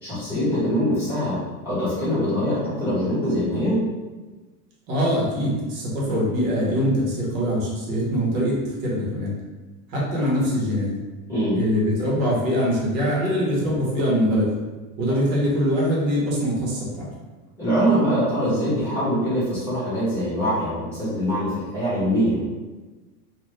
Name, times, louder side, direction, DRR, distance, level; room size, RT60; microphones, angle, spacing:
voice 1, 0.0-1.4 1.6-3.8 11.3-11.6 17.6-22.4, equal, 5° right, -12 dB, 1.2 m, -23 dB
voice 2, 4.9-9.3 9.9-10.9 11.5-14.5 15.0-17.1, equal, 55° right, -4 dB, 1.2 m, -23 dB
2.6 x 2.5 x 3.2 m, 1.2 s
supercardioid pair, 165°, 48 cm